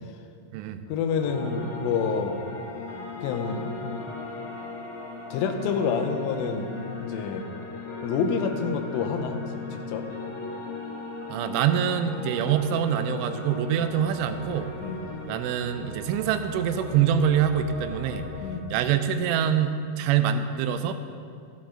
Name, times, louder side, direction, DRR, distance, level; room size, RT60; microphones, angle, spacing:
voice 1, 0.9-2.4 3.2-3.9 5.3-6.7 7.0-7.4 8.0-10.1 14.8-15.0 18.4-18.7, left 5 dB, 85° left, 6 dB, 3.3 m, -28 dB
sound 1, 1.1-18.5, left 3 dB, 70° left, 4.3 m, -37 dB
voice 2, 11.3-14.7 15.3-18.3 18.7-20.9, right 8 dB, 90° right, 9 dB, 3.1 m, -25 dB
14.0 x 9.3 x 3.8 m, 2.2 s
omnidirectional pair, 5.5 m